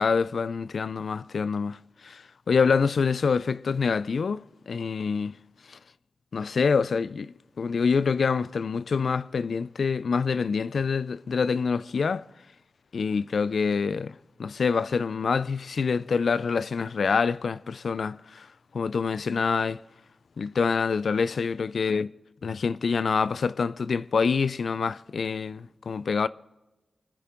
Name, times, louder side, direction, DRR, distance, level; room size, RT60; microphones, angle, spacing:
voice 1, 0.0-1.8 2.0-5.4 5.7-5.8 6.3-12.3 12.9-14.1 14.4-18.5 18.7-19.8 20.4-22.1 22.4-26.3, left 5 dB, 75° left, 0.4 m, -26 dB
25.0 x 10.5 x 3.7 m
cardioid pair, 40°, 0 cm